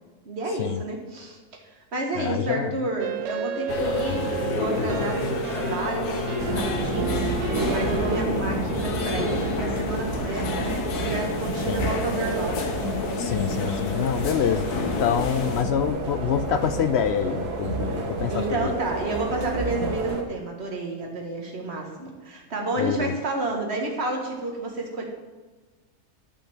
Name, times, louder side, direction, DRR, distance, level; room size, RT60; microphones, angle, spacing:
voice 1, 0.3-1.4 1.9-12.7 13.2-13.5 18.3-25.1, right 2 dB, 45° right, 1 dB, 2.0 m, -31 dB
voice 2, 2.2-2.7 11.7-11.9 13.2-18.7 22.8-23.1, left 9 dB, 70° left, 11 dB, 0.6 m, -26 dB
sound 1, 3.0-8.2, right 8 dB, 70° right, 0.8 m, -32 dB
sound 2, 3.7-15.6, left 4 dB, 90° left, 1.5 m, -30 dB
sound 3, 6.4-20.2, right 3 dB, 90° right, 1.8 m, -30 dB
11.5 x 5.7 x 7.2 m, 1.3 s
omnidirectional pair, 1.6 m